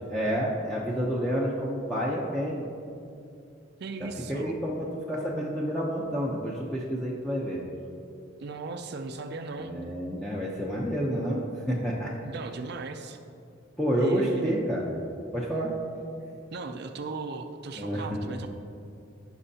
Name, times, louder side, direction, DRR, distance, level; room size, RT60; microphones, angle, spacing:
voice 1, 0.1-2.6 4.0-7.6 9.6-12.1 13.8-15.0 15.3-15.8 17.8-18.4, equal, 5° left, -5 dB, 0.7 m, -29 dB
voice 2, 3.8-4.6 8.4-9.7 12.2-13.2 14.0-14.6 16.5-18.5, right 3 dB, 55° right, 6 dB, 0.5 m, -36 dB
15.5 x 6.2 x 2.8 m, 2.6 s
head